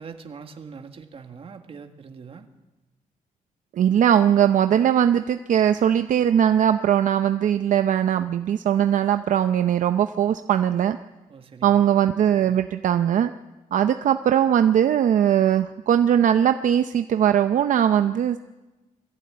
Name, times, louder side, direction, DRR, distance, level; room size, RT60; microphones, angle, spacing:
voice 1, 0.0-2.5 11.3-11.9, right 5 dB, 40° right, 6 dB, 1.8 m, -42 dB
voice 2, 3.7-11.0 11.6-13.3 13.7-18.4, right 9 dB, 65° right, 9 dB, 0.6 m, -20 dB
21.5 x 15.0 x 8.7 m, 1.1 s
wide cardioid pair, 150°, 14 cm